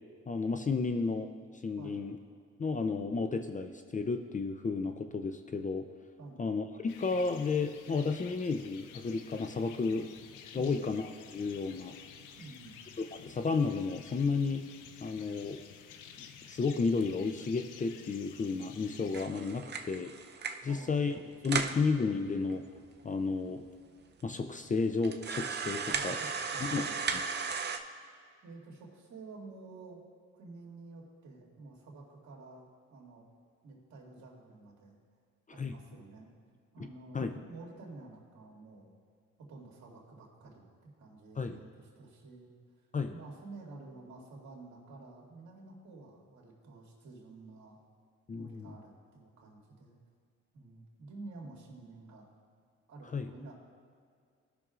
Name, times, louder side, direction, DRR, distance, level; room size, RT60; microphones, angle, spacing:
voice 1, 0.3-1.3 1.6-2.2 2.6-5.9 6.4-10.1 10.5-12.0 13.1-14.6 15.0-15.6 16.2-20.1 20.6-21.1 21.4-22.6 23.0-23.6 24.2-26.2 26.7-26.9 27.1-27.2 35.6-35.7 36.8-36.9 37.1-37.4 41.4-41.6 42.9-43.1 48.3-48.8 53.1-53.3, left 4 dB, 25° left, 7 dB, 0.5 m, -32 dB
voice 2, 1.8-2.1 6.2-6.5 10.5-10.9 12.4-12.8 20.6-21.4 21.7-21.8 25.8-27.0 28.4-30.0 30.3-33.3 33.6-35.0 35.5-36.3 36.7-38.9 39.5-42.5 43.1-47.8 48.3-50.0 50.5-52.3 52.9-53.5, right 3 dB, 65° right, -2 dB, 2.3 m, -50 dB
sound 1, 6.9-19.2, left 8 dB, 85° left, 0.6 m, -52 dB
sound 2, 19.1-20.7 21.1-21.2 21.4-21.8 22.5-22.6 22.8-22.9 23.6-23.7 24.2-24.3 25.0-27.8, right 5 dB, 35° right, 0.6 m, -35 dB
17.0 x 6.0 x 2.5 m, 2.2 s
cardioid pair, 90°, 30 cm